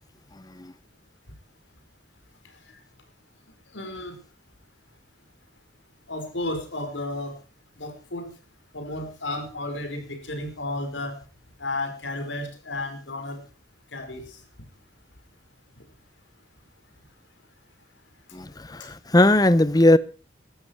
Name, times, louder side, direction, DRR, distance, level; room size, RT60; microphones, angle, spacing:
voice 1, 3.7-4.1 6.1-7.3 7.8-8.3 8.7-11.2 11.6-13.4 13.9-14.4, left 2 dB, 85° left, 5.1 m, -32 dB
voice 2, 18.3-20.0, left 1 dB, 20° left, 0.8 m, -18 dB
18.0 x 13.0 x 4.7 m
head